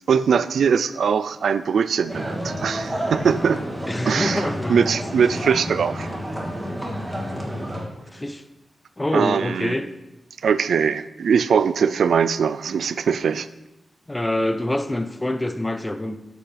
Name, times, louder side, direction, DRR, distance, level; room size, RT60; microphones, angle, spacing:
voice 1, 0.0-3.6 4.1-6.1 9.1-9.7 10.4-13.5, right 6 dB, 85° right, 0.4 m, -21 dB
sound 1, 2.1-7.8, equal, 20° right, 2.4 m, -30 dB
voice 2, 3.9-4.9 5.2-5.3 8.1-8.4 9.0-9.9 14.1-16.2, left 1 dB, 20° left, 0.8 m, -26 dB
11.5 x 8.3 x 3.4 m
cardioid pair, 55°, 0 cm